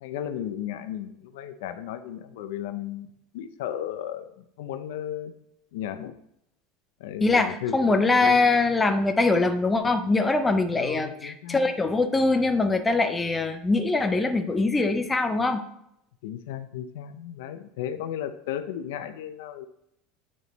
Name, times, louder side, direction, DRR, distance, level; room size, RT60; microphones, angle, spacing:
voice 1, 0.0-3.1 3.3-5.3 5.7-6.2 7.0-8.5 10.7-11.7 16.2-19.7, left 10 dB, 75° left, 10 dB, 0.5 m, -34 dB
voice 2, 7.2-15.6, left 3 dB, 10° left, 6 dB, 0.4 m, -23 dB
8.6 x 3.1 x 3.9 m, 0.78 s
supercardioid pair, 170°, 0 cm